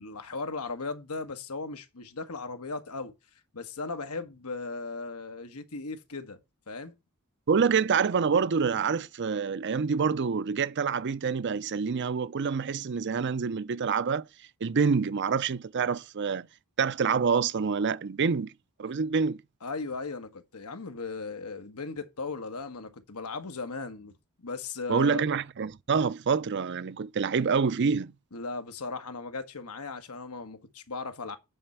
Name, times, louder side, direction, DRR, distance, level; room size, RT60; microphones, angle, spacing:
voice 1, 0.0-3.1 3.5-6.4 6.7-6.9 19.6-25.2 28.3-31.4, left 3 dB, 90° left, 1.4 m, -37 dB
voice 2, 7.5-14.2 14.6-16.5 16.8-18.5 18.8-19.4 24.9-28.1, right 5 dB, 50° right, 0.5 m, -27 dB
8.9 x 4.4 x 6.9 m
head